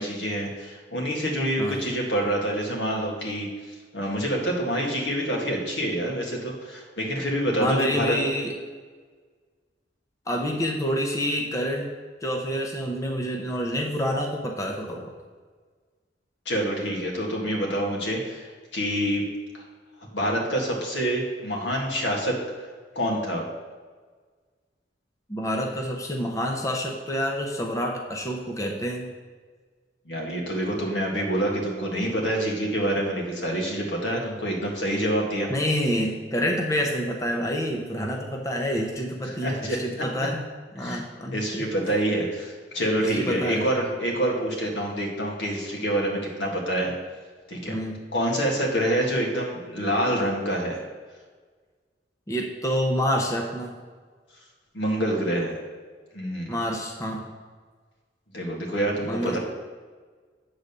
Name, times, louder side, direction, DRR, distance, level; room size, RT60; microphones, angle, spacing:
voice 1, 0.0-8.2 16.5-19.2 20.1-22.7 23.0-23.4 30.1-35.5 39.2-39.8 40.8-41.0 41.3-46.9 47.5-47.8 48.1-50.8 54.7-55.6 56.1-56.6 58.3-59.4, right 1 dB, 80° left, -1 dB, 1.8 m, -27 dB
voice 2, 7.6-8.5 10.3-11.9 12.2-15.1 25.3-29.1 35.5-40.4 40.7-41.7 43.2-43.7 47.7-48.0 52.3-53.7 56.5-57.3 59.1-59.4, equal, 20° left, 1 dB, 0.7 m, -27 dB
8.5 x 3.9 x 6.7 m, 1.5 s
head